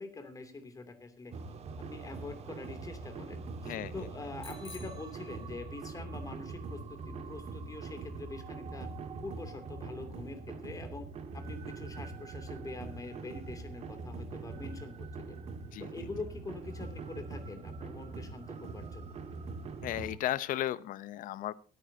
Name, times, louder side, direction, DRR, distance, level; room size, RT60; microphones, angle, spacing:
voice 1, 0.0-1.3 1.9-8.9 9.2-11.1 11.3-15.4 15.8-19.2, left 3 dB, 25° left, 7 dB, 2.8 m, -45 dB
sound 1, 1.3-20.2, right 4 dB, 50° right, 1.8 m, -43 dB
Bicycle bell, 4.4-6.0, left 6 dB, 40° left, 1.8 m, -53 dB
voice 2, 19.8-21.5, left 13 dB, 70° left, 17 dB, 0.8 m, -34 dB
24.0 x 9.5 x 2.8 m, 0.36 s
cardioid pair, 135°, 14 cm